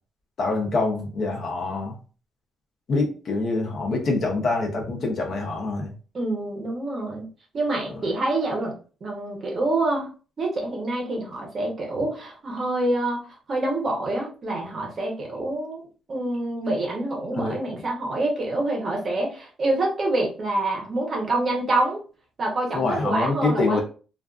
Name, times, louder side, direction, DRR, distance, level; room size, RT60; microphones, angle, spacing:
voice 1, 0.4-2.0 2.9-5.9 17.4-17.6 22.7-23.8, left 3 dB, 40° left, 1 dB, 0.6 m, -25 dB
voice 2, 6.1-7.3 7.5-10.1 10.4-22.0 22.4-23.8, right 2 dB, 30° right, 0 dB, 0.7 m, -26 dB
2.5 x 2.3 x 2.3 m, 0.37 s
cardioid pair, 170°, 0 cm